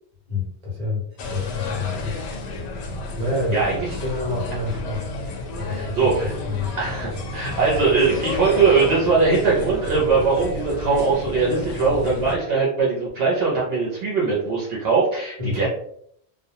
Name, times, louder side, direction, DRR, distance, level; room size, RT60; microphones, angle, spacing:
voice 1, 0.3-2.2 3.2-3.6 3.9-5.0 5.6-6.7 7.4-7.6 15.4-15.7, left 3 dB, 35° right, -3 dB, 0.9 m, -28 dB
sound 1, 1.2-12.4, left 3 dB, 70° left, 0.8 m, -31 dB
voice 2, 5.6-6.3 6.8-15.7, right 4 dB, 65° right, -5 dB, 0.8 m, -21 dB
2.2 x 2.2 x 2.8 m, 0.67 s
omnidirectional pair, 1.2 m